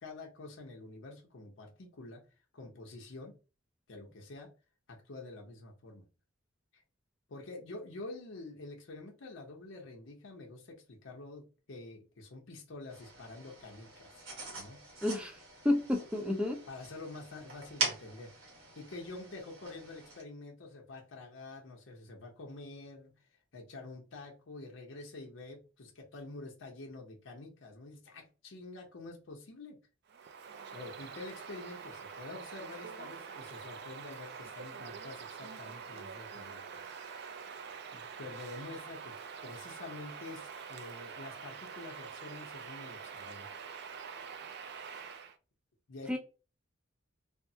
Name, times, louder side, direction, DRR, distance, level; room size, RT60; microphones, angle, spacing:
voice 1, 0.0-2.2 2.5-3.4 3.9-4.5 4.9-6.1 6.7-6.8 7.3-14.2 14.6-14.8 16.7-18.3 18.8-23.1 23.5-29.8 30.7-36.6 37.9-39.1 39.4-43.5 45.9-46.2, left 2 dB, 70° left, 0.7 m, -47 dB
sound 1, 12.9-20.2, right 3 dB, 85° right, 1.2 m, -42 dB
voice 2, 15.0-15.4 15.6-16.6 46.1-46.2, left 1 dB, 5° right, 0.6 m, -30 dB
Bird vocalization bird call bird song, 30.1-45.4, right 6 dB, 55° right, 0.4 m, -46 dB
3.4 x 2.0 x 2.7 m
head